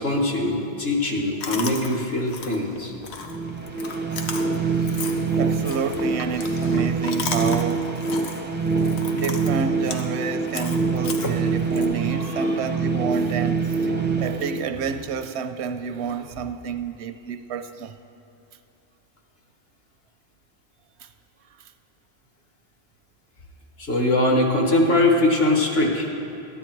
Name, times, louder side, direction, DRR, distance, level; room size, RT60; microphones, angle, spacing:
voice 1, 0.0-2.9 8.8-8.9 11.2-11.4 12.1-12.6 23.8-26.1, left 2 dB, 65° left, 1.6 m, -22 dB
Chewing mastication, 1.4-11.9, left 4 dB, 85° left, 1.1 m, -36 dB
sound 1, 3.3-15.2, right 4 dB, 15° right, 0.4 m, -25 dB
voice 2, 5.4-8.0 9.1-13.9 14.2-18.0 21.0-21.1 21.6-21.7, right 6 dB, 85° right, 0.9 m, -30 dB
13.0 x 10.0 x 4.5 m
omnidirectional pair, 1.1 m